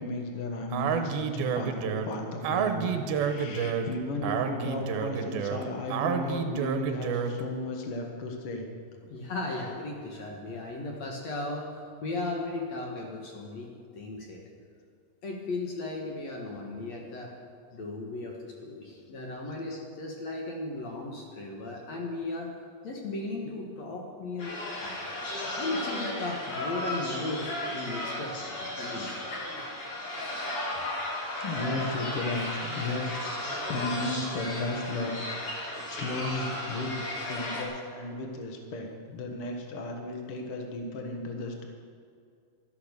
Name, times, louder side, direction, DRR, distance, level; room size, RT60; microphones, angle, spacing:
voice 1, 0.0-8.7 9.0-9.2 19.4-19.5 31.4-33.4 33.7-35.1 35.4-36.9 37.3-41.7, left 2 dB, 80° left, 2 dB, 1.2 m, -35 dB
Speech, 0.7-7.5, right 7 dB, 75° right, 2.5 m, -30 dB
voice 2, 9.1-11.7 12.0-13.7 13.9-14.4 15.2-17.3 17.7-22.5 22.8-25.1 25.6-27.5 27.7-29.1, left 2 dB, 60° left, 0 dB, 1.9 m, -36 dB
sound 1, 24.4-37.6, left 1 dB, 40° left, 2.7 m, -35 dB
13.0 x 12.0 x 6.7 m, 2.3 s
omnidirectional pair, 4.9 m